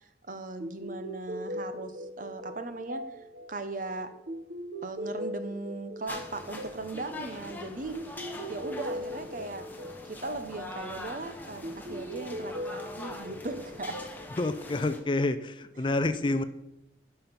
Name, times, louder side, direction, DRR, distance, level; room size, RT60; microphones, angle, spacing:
voice 1, 0.0-4.1 4.8-8.0 8.5-9.7 10.0-14.0, right 2 dB, 45° right, 9 dB, 0.8 m, -38 dB
sound 1, 0.6-15.4, equal, 65° right, 1.1 m, -40 dB
sound 2, 6.1-15.0, left 1 dB, 10° left, 1.0 m, -43 dB
voice 2, 14.4-16.4, left 2 dB, 25° left, 11 dB, 0.4 m, -28 dB
11.5 x 5.8 x 5.3 m, 0.89 s
head